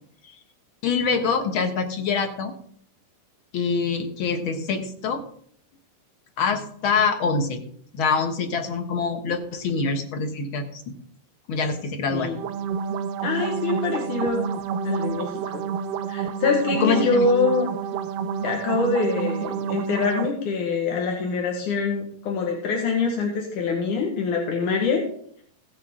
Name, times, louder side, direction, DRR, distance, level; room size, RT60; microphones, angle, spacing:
voice 1, 0.8-2.5 3.5-5.2 6.4-7.6 7.9-10.8 11.5-12.3 16.8-17.2, left 5 dB, 55° left, 6 dB, 1.6 m, -25 dB
voice 2, 12.1-12.4 13.2-14.5 14.8-15.6 16.1-17.7 18.4-25.0, left 4 dB, 90° left, -1 dB, 3.1 m, -24 dB
sound 1, 12.3-20.3, right 6 dB, 90° right, 1.4 m, -29 dB
16.5 x 8.8 x 3.8 m, 0.62 s
omnidirectional pair, 3.5 m